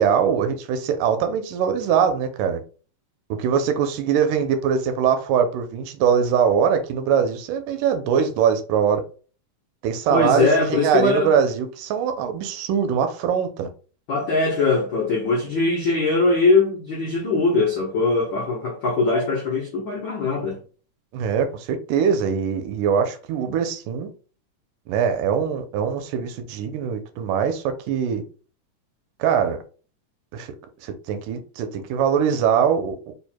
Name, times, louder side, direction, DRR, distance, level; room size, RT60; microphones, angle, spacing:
voice 1, 0.0-2.6 3.4-9.1 9.8-13.7 21.1-24.1 24.9-28.2 29.2-29.6 30.3-30.5 30.8-33.1, right 7 dB, 80° right, 2.3 m, -22 dB
voice 2, 10.1-11.3 14.1-20.6, left 3 dB, 70° left, 1.1 m, -21 dB
5.0 x 4.4 x 2.2 m
omnidirectional pair, 3.8 m